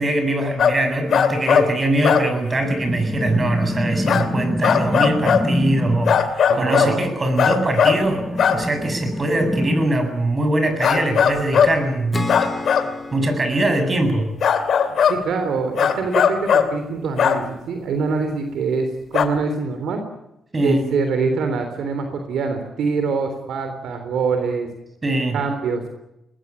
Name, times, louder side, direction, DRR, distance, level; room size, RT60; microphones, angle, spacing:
voice 1, 0.0-12.3 13.1-14.3 20.5-20.9 25.0-25.4, right 1 dB, 35° right, 8 dB, 7.5 m, -22 dB
sound 1, 0.6-0.8 1.1-1.7 2.0-2.3 2.5-2.6 4.1-4.2 4.6-5.4 6.1-6.9 7.4-8.0 8.4-8.6 10.8-11.7 12.3-12.9 14.4-15.1 15.8-16.7 17.2-17.4 19.1-19.2, left 7 dB, 70° left, 2.7 m, -17 dB
sound 2, 2.6-6.2 7.8-9.9, left 1 dB, 10° left, 3.3 m, -26 dB
voice 2, 6.5-7.1 15.0-20.0 20.6-24.7 25.3-25.9, right 4 dB, 80° right, 7 dB, 3.6 m, -24 dB
Acoustic guitar / Strum, 12.1-15.6, left 3 dB, 30° left, 3.3 m, -33 dB
21.5 x 20.5 x 9.9 m, 0.86 s
cardioid pair, 70°, 0 cm